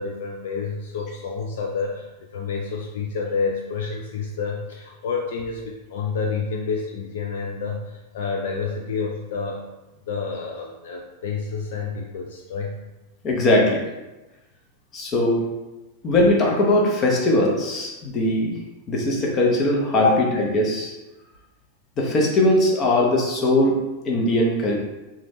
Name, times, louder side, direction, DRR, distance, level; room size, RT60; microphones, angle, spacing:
voice 1, 0.0-9.7 10.1-12.7, left 5 dB, 55° left, 1 dB, 0.4 m, -29 dB
voice 2, 13.2-13.8 14.9-15.4 16.0-18.6 18.9-20.9 22.0-23.8 24.0-24.8, left 1 dB, 30° left, -1 dB, 0.9 m, -20 dB
4.0 x 2.4 x 3.3 m, 1.0 s
figure-of-eight pair, 90°, 0 cm